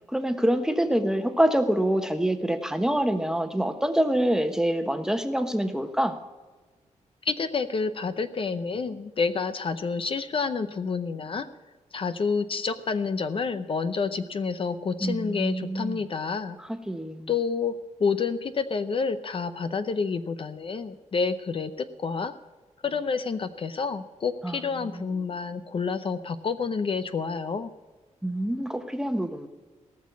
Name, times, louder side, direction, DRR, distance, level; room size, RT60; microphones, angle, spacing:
voice 1, 0.1-6.2 15.0-16.0 16.6-17.3 24.4-25.1 28.2-29.5, right 1 dB, 5° right, 7 dB, 1.1 m, -26 dB
voice 2, 7.2-11.5 11.9-16.6 17.3-17.7 18.0-22.3 22.8-27.7, left 5 dB, 45° left, 11 dB, 0.7 m, -29 dB
18.5 x 6.5 x 8.4 m, 1.3 s
cardioid pair, 105°, 12 cm